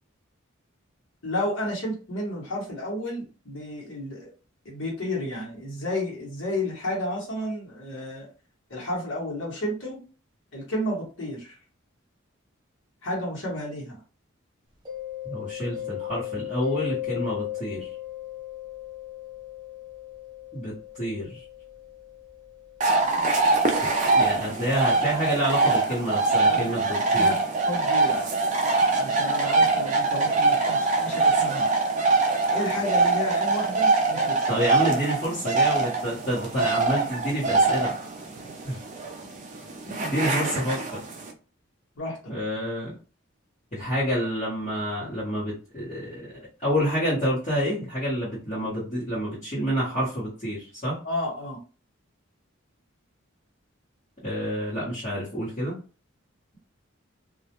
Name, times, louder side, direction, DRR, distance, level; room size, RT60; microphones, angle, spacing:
voice 1, 1.2-4.3 4.6-8.3 8.7-10.0 10.5-11.5 13.0-14.0 26.4-26.7 27.1-28.3 29.0-31.7 32.5-34.6 42.0-42.2 51.0-51.6, left 1 dB, 65° left, -4 dB, 1.0 m, -31 dB
Mallet percussion, 14.9-24.4, left 13 dB, 20° right, 0.8 m, -37 dB
voice 2, 15.2-17.9 20.5-21.4 23.8-26.9 27.1-27.3 34.5-37.9 38.6-38.8 40.0-41.0 42.3-42.9 43.7-46.3 46.6-51.0 54.2-55.8, equal, 35° left, -10 dB, 1.0 m, -28 dB
sound 1, 22.8-41.3, right 3 dB, 35° right, 0.4 m, -23 dB
2.3 x 2.1 x 2.8 m, 0.36 s
head